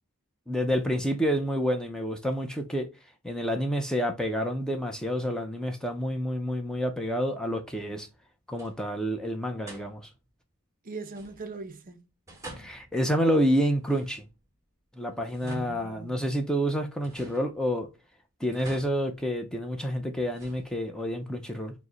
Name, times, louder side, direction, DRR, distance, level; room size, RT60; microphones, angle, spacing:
voice 1, 0.5-2.9 3.2-8.1 8.5-10.1 12.6-14.2 15.0-17.9 18.4-21.7, equal, 5° left, 0.5 m, -28 dB
sound 1, 8.2-8.3 8.5-9.0 9.7-10.3 11.1-11.8 12.3-14.5 15.1-16.5 17.0-18.0 18.5-19.8 20.3-21.2, right 1 dB, 15° right, 1.2 m, -50 dB
voice 2, 10.8-12.1 15.4-16.4, right 3 dB, 40° right, 0.6 m, -40 dB
4.9 x 2.1 x 3.8 m
head